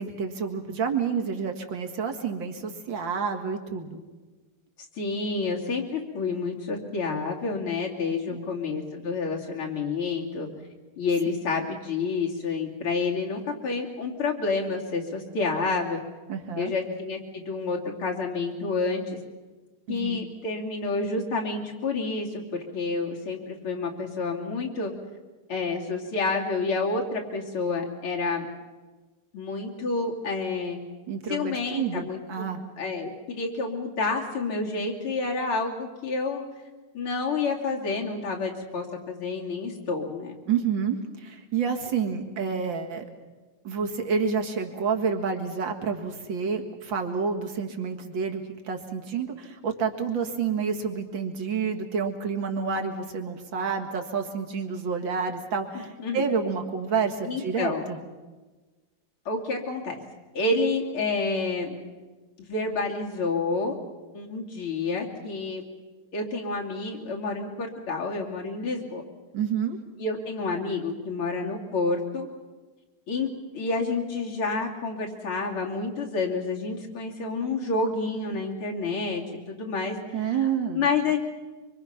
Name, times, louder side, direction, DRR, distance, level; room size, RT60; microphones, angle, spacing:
voice 1, 0.0-4.0 8.3-8.5 11.3-11.4 16.3-16.7 19.9-20.2 31.1-32.6 40.5-43.0 43.6-58.0 69.3-69.8 80.1-80.9, right 6 dB, 65° right, 3 dB, 2.6 m, -29 dB
voice 2, 5.0-10.5 11.0-16.0 16.6-19.2 19.9-24.9 25.5-28.5 29.3-30.8 31.3-32.5 32.8-36.4 36.9-40.4 55.7-56.2 57.3-57.8 59.3-60.0 60.3-61.7 62.4-63.8 64.1-65.6 66.1-69.0 70.0-72.3 73.1-73.3 73.5-80.0 80.2-80.4 80.7-81.2, left 3 dB, 85° left, 0 dB, 3.5 m, -29 dB
25.0 x 24.5 x 5.9 m, 1.3 s
omnidirectional pair, 2.3 m